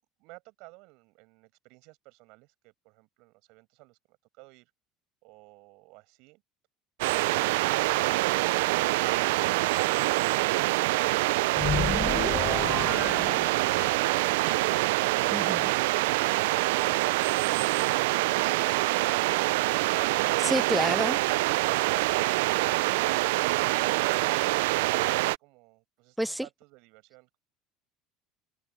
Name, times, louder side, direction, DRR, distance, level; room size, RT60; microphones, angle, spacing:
voice 1, 0.2-4.7 5.2-6.4 21.5-27.4, right 26 dB, 70° right, 7.4 m, -51 dB
sound 1, 7.0-25.4, right 21 dB, 85° right, 0.3 m, -25 dB
sound 2, 11.5-14.1, left 7 dB, 35° left, 0.7 m, -32 dB
voice 2, 15.3-15.7 20.4-21.2 26.2-26.5, right 1 dB, 5° right, 0.3 m, -28 dB
supercardioid pair, 110°, 0 cm